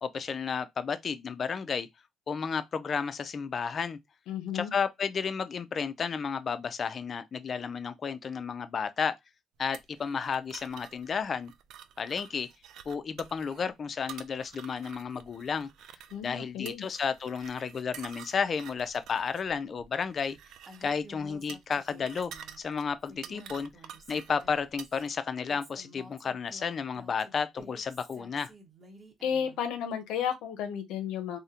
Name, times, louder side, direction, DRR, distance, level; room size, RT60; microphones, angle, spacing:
voice 1, 0.0-1.9 2.3-4.0 4.5-9.2 9.6-11.5 12.0-12.5 12.9-15.7 16.2-20.4 20.8-22.3 22.6-23.7 24.1-28.5, left 6 dB, 40° left, 0.4 m, -32 dB
voice 2, 4.3-4.7 16.1-16.8 29.2-31.4, left 8 dB, 90° left, 0.5 m, -33 dB
sound 1, 9.7-25.1, right 9 dB, 75° right, 0.3 m, -49 dB
Female speech woman speaking, 20.7-22.6 23.0-25.0 25.5-29.6, right 1 dB, 25° right, 0.9 m, -52 dB
3.7 x 2.1 x 2.7 m
cardioid pair, 110°, 0 cm